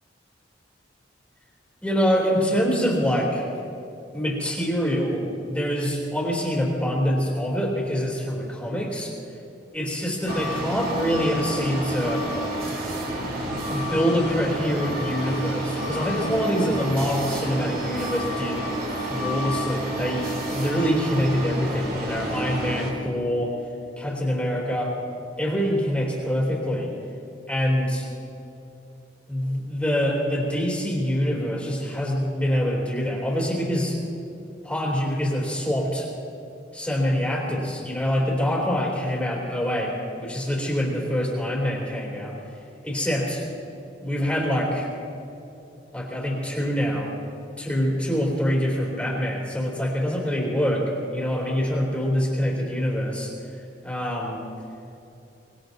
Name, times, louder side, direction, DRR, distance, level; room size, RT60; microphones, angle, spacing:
voice 1, 1.8-3.5 4.1-9.1 9.7-12.3 13.7-18.7 19.1-23.5 24.0-25.0 25.4-26.9 27.5-28.1 29.3-34.0 34.6-36.1 36.7-42.4 42.8-43.4 44.0-44.9 45.9-47.1 47.6-53.3 53.8-54.4, equal, 5° left, -3 dB, 2.9 m, -25 dB
sound 1, 10.3-22.9, equal, 55° right, 2.6 m, -29 dB
24.5 x 19.5 x 2.7 m, 2.8 s
head